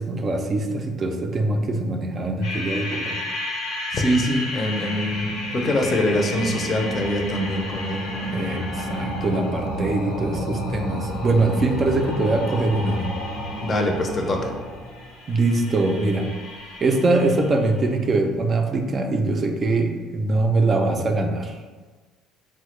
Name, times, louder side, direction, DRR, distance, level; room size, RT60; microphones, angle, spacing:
voice 1, 0.0-3.2 8.3-13.0 15.3-16.3 16.8-21.6, right 2 dB, 40° right, 4 dB, 0.4 m, -23 dB
sound 1, 2.4-17.7, left 1 dB, 85° left, 0.7 m, -31 dB
voice 2, 3.9-5.3 5.5-8.0 13.6-14.6, left 1 dB, 35° left, 2 dB, 0.5 m, -23 dB
3.4 x 2.1 x 3.1 m, 1.3 s
supercardioid pair, 90°, 0 cm